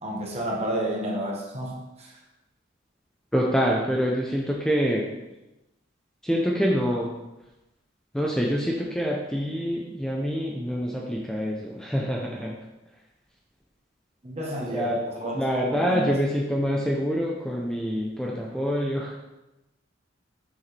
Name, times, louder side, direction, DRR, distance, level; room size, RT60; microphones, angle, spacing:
voice 1, 0.0-2.1 14.2-15.3 15.6-16.2, right 1 dB, 35° right, -1 dB, 1.4 m, -31 dB
voice 2, 3.3-5.1 6.2-7.1 8.1-12.6 14.7-15.0 15.3-19.2, equal, 5° left, -3 dB, 0.6 m, -26 dB
7.2 x 6.3 x 3.4 m, 0.98 s
head